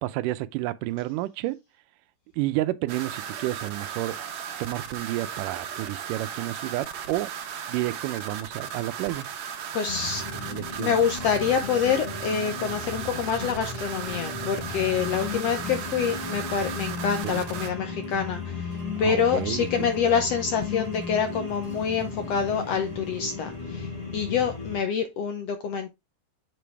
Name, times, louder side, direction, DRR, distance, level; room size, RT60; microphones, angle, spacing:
voice 1, 0.0-1.6 2.3-4.2 4.6-7.3 7.7-9.3 10.3-11.0 17.2-17.4 19.0-19.9, right 16 dB, 85° right, 2.2 m, -30 dB
sound 1, 2.9-17.7, right 8 dB, 65° right, 2.1 m, -36 dB
voice 2, 9.7-10.2 10.8-25.9, left 7 dB, 75° left, 1.5 m, -26 dB
sound 2, 9.8-24.8, left 4 dB, 15° left, 1.5 m, -35 dB
7.6 x 5.1 x 3.3 m
omnidirectional pair, 3.7 m